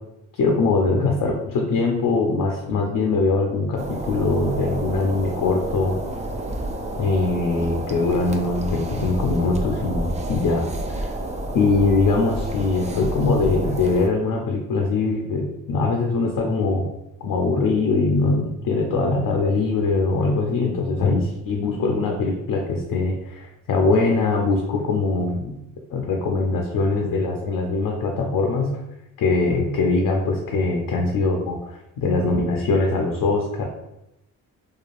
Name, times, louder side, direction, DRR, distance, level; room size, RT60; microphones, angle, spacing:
voice 1, 0.3-6.0 7.0-11.1 11.5-16.9 17.2-25.6 25.9-28.7 29.2-33.6, left 3 dB, 60° left, 1 dB, 0.6 m, -22 dB
sound 1, 3.8-14.1, right 1 dB, 20° right, 0.3 m, -30 dB
3.0 x 2.3 x 2.5 m, 0.88 s
supercardioid pair, 50°, 39 cm